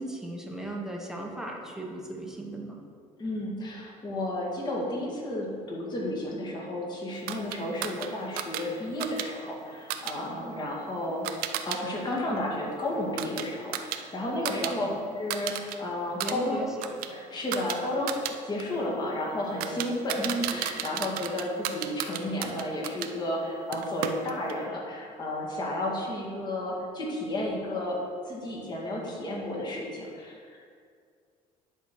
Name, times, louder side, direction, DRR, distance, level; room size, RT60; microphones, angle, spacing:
voice 1, 0.0-2.8 14.5-14.9 16.2-16.9, right 1 dB, 5° right, -1 dB, 1.1 m, -37 dB
voice 2, 3.2-11.3 11.7-14.9 15.2-16.6 17.1-18.2 18.5-28.0 28.3-30.7, left 1 dB, 30° left, -3 dB, 2.0 m, -32 dB
sound 1, 7.3-11.8 12.1-14.7 15.0-15.8 16.1-23.1 23.7-24.6, right 10 dB, 85° right, 0.6 m, -36 dB
10.5 x 4.4 x 6.2 m, 2.2 s
cardioid pair, 145°, 15 cm